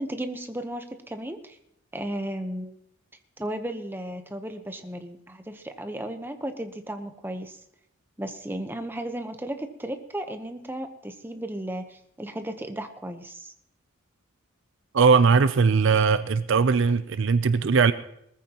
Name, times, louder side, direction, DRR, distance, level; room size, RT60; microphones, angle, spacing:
voice 1, 0.0-1.6 1.9-2.8 3.4-7.6 8.2-13.5, right 1 dB, 10° right, 6 dB, 0.9 m, -34 dB
voice 2, 14.9-17.9, right 5 dB, 60° right, 13 dB, 0.5 m, -20 dB
20.5 x 14.5 x 3.0 m, 0.76 s
head